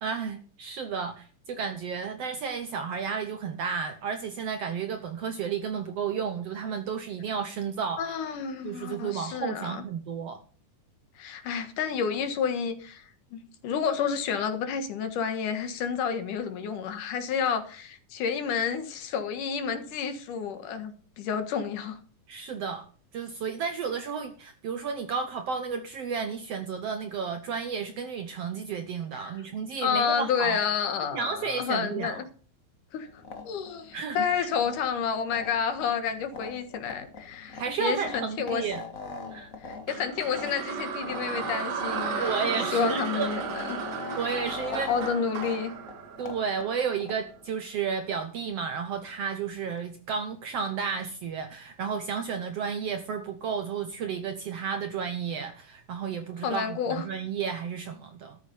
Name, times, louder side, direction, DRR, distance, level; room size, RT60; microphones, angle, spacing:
voice 1, 0.0-8.0 8.6-10.4 22.3-22.9 23.1-30.6 31.1-32.2 33.9-34.2 37.5-38.8 39.3-39.5 42.2-43.3 44.2-44.9 46.2-58.4, right 6 dB, 65° right, 8 dB, 1.6 m, -32 dB
voice 2, 8.0-9.8 11.2-13.0 13.3-22.0 29.2-29.3 29.8-32.3 32.9-33.1 33.4-38.6 39.6-43.4 43.7-43.8 44.4-45.7 56.4-57.1, left 6 dB, 70° left, 8 dB, 3.0 m, -30 dB
sound 1, 33.1-47.4, left 3 dB, 45° left, 1.1 m, -42 dB
sound 2, 39.9-47.1, right 6 dB, 85° right, 3.1 m, -34 dB
13.5 x 8.3 x 5.4 m, 0.43 s
omnidirectional pair, 3.8 m